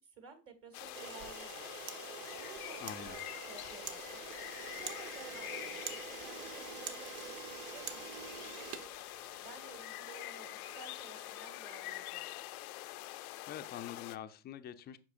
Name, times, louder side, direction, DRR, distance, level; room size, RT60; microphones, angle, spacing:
voice 1, 0.0-1.7 2.4-4.4 4.7-9.1 9.4-12.3, right 4 dB, 30° right, 1.6 m, -55 dB
sound 1, 0.7-14.2, left 17 dB, 90° left, 0.6 m, -46 dB
Camera, 0.8-9.6, right 8 dB, 70° right, 1.2 m, -46 dB
sound 2, 1.4-11.6, right 10 dB, 90° right, 0.8 m, -60 dB
voice 2, 2.8-3.2 13.5-15.0, left 10 dB, 25° left, 0.4 m, -45 dB
8.2 x 6.0 x 2.5 m
supercardioid pair, 125°, 42 cm